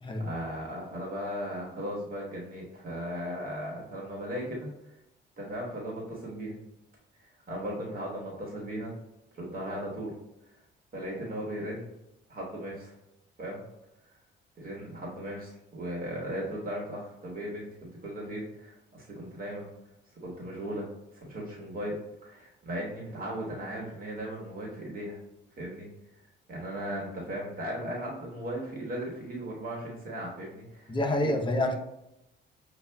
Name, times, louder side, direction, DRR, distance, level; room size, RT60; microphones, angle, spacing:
voice 1, 0.2-4.7 5.4-6.5 7.5-8.9 9.3-10.1 10.9-11.9 12.3-12.9 13.4-13.6 14.6-19.7 20.2-20.9 21.2-22.0 22.2-25.2 25.6-25.9 26.5-30.9 31.2-31.3, equal, 45° right, -3 dB, 1.2 m, -37 dB
voice 2, 30.9-31.8, left 1 dB, 25° left, 3 dB, 0.6 m, -27 dB
6.4 x 2.4 x 2.2 m, 0.88 s
cardioid pair, 90°, 20 cm